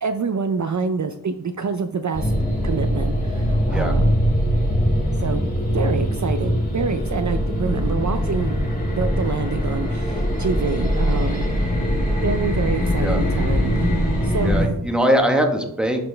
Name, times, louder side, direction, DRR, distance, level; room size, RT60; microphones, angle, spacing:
voice 1, 0.0-2.3 2.6-4.2 5.1-8.6 9.0-11.5 12.2-14.5, right 5 dB, 50° right, 8 dB, 0.5 m, -26 dB
sound 1, 2.1-14.7, equal, 20° left, 2.1 m, -22 dB
voice 2, 14.4-16.0, equal, ahead, 3 dB, 1.1 m, -21 dB
11.0 x 4.2 x 3.3 m, 0.80 s
wide cardioid pair, 65°, 38 cm